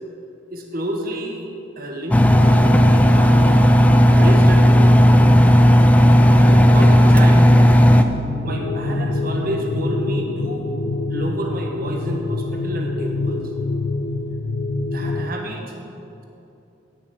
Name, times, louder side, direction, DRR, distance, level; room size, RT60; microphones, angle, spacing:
voice 1, 0.5-1.4 1.8-3.4 4.1-5.0 6.3-7.7 8.4-10.7 11.1-13.4 14.9-15.6, right 1 dB, 50° right, 1 dB, 1.2 m, -29 dB
Engine, 2.1-8.0, equal, 5° left, 0.3 m, -12 dB
sound 1, 5.9-12.9, right 1 dB, 25° right, 2.7 m, -35 dB
sound 2, 8.4-15.3, left 3 dB, 85° left, 0.5 m, -26 dB
9.0 x 7.1 x 6.4 m, 2.8 s
head